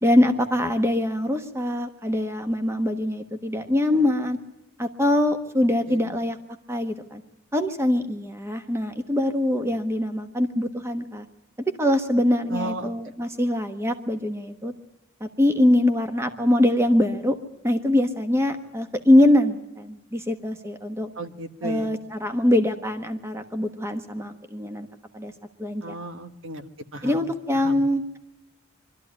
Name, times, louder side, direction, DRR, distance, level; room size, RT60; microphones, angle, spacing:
voice 1, 0.0-4.4 4.8-6.4 6.7-7.2 7.5-11.2 11.7-14.7 15.2-17.4 17.6-21.1 21.6-24.9 25.1-25.3 25.6-26.0 27.0-28.2, left 1 dB, 10° right, 7 dB, 1.2 m, -23 dB
voice 2, 12.5-12.9 21.2-21.9 25.8-27.2 27.6-27.8, right 2 dB, 65° right, 8 dB, 1.4 m, -35 dB
24.0 x 13.0 x 9.7 m, 0.91 s
head